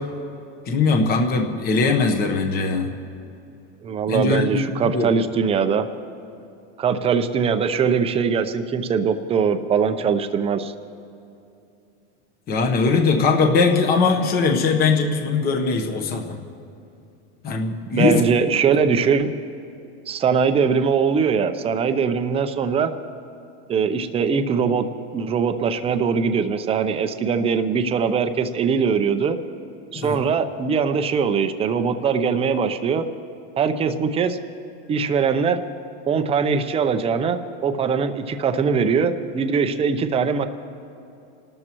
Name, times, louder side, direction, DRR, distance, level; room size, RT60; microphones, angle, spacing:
voice 1, 0.7-2.9 4.1-5.1 12.5-16.4 17.4-18.2 30.0-30.2, left 4 dB, 25° left, 3 dB, 1.1 m, -20 dB
voice 2, 3.8-5.9 6.8-10.7 17.9-19.3 20.1-22.9 23.7-24.9 25.1-29.4 29.9-33.1 33.6-34.4 34.9-35.6 36.1-40.5, right 6 dB, 15° right, 8 dB, 0.6 m, -21 dB
29.5 x 13.0 x 3.0 m, 2.7 s
supercardioid pair, 150°, 34 cm